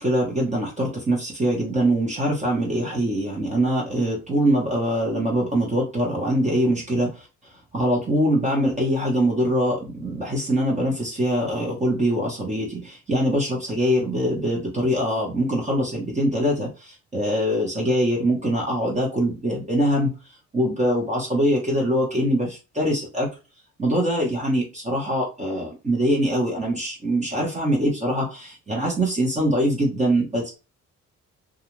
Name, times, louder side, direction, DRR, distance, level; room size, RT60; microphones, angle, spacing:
voice 1, 0.0-7.1 7.7-20.1 20.5-23.3 23.8-30.5, equal, 25° right, -1 dB, 0.9 m, -23 dB
2.4 x 2.3 x 3.0 m, 0.29 s
cardioid pair, 90°, 30 cm